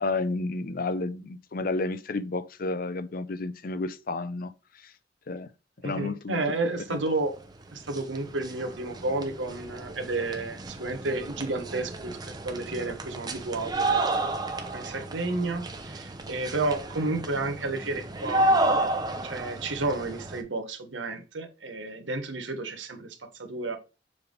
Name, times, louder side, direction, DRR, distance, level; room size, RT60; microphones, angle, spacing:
voice 1, 0.0-4.5 5.3-5.5 5.8-6.4 6.9-7.0, left 3 dB, 50° left, 0.5 m, -31 dB
voice 2, 5.8-7.4 7.7-12.2 12.4-14.0 14.7-18.9 19.2-23.8, right 2 dB, 85° right, 1.3 m, -31 dB
sound 1, 7.4-7.5 7.7-20.4, right 2 dB, 20° right, 0.7 m, -31 dB
6.9 x 3.5 x 3.9 m
head